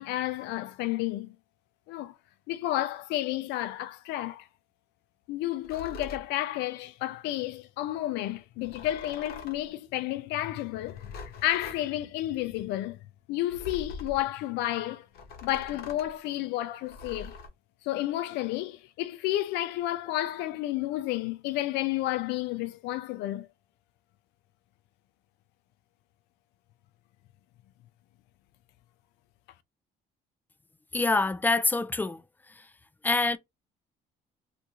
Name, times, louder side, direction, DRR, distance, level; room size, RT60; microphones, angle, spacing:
voice 1, 0.0-1.3 1.9-2.1 2.5-4.5 5.3-13.0 13.3-15.1 15.4-17.4 17.8-23.5, left 14 dB, 85° left, 0.4 m, -31 dB
sound 1, 5.6-6.3 8.6-9.7 10.8-11.8 13.5-14.2 15.1-16.1 16.9-17.5, left 4 dB, 65° left, 0.9 m, -43 dB
voice 2, 30.9-32.2 32.6-32.7 33.0-33.4, left 3 dB, 10° left, 0.3 m, -25 dB
2.8 x 2.5 x 3.5 m
cardioid pair, 110°, 17 cm